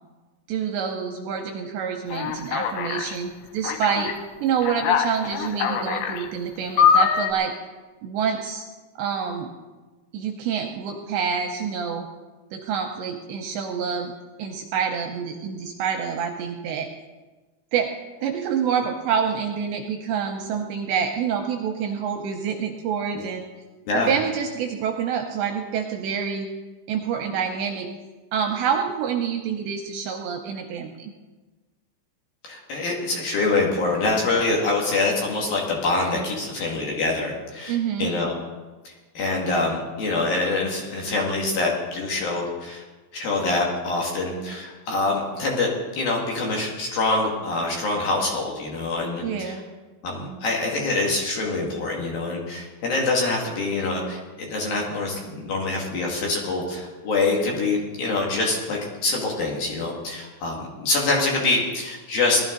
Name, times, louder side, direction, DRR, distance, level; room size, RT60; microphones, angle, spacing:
voice 1, 0.5-4.1 4.4-7.5 8.0-8.7 9.0-9.5 10.1-12.1 12.5-14.1 14.4-16.9 17.7-17.9 18.2-23.5 23.9-26.5 26.9-27.9 28.3-31.1 37.7-38.1 49.2-49.7, right 7 dB, 80° right, 3 dB, 2.7 m, -27 dB
Alarm, 2.1-3.1 3.6-4.1 4.6-6.3 6.8-7.3, left 7 dB, 80° left, 2.6 m, -22 dB
voice 2, 32.5-38.3 38.9-42.8 43.1-49.6 50.0-62.4, left 3 dB, 55° left, -2 dB, 3.4 m, -25 dB
19.5 x 13.0 x 4.0 m, 1.3 s
omnidirectional pair, 5.9 m